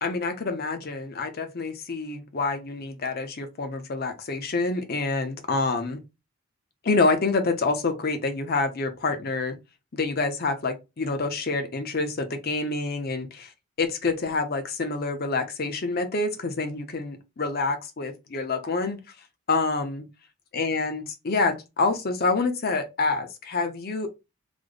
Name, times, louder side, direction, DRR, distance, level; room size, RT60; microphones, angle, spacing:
voice 1, 0.0-6.0 6.8-9.5 9.9-13.5 13.8-19.0 19.5-20.0 20.5-24.1, left 3 dB, 45° left, 0.6 m, -27 dB
3.3 x 2.1 x 3.7 m
head